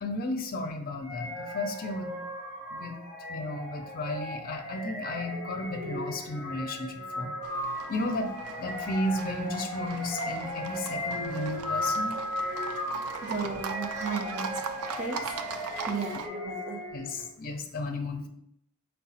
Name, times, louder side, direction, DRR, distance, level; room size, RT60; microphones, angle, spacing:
voice 1, 0.0-2.1 2.7-3.0 3.3-12.2 16.9-18.3, left 2 dB, 45° left, 4 dB, 0.6 m, -34 dB
sound 1, 1.0-17.3, left 1 dB, 5° left, 1.1 m, -36 dB
Livestock farm animals working animals, 7.4-16.3, right 6 dB, 85° right, 0.4 m, -40 dB
voice 2, 13.2-14.6 15.0-15.3 15.9-16.8, right 4 dB, 35° right, 1 dB, 0.7 m, -34 dB
4.7 x 2.2 x 4.1 m, 0.75 s
head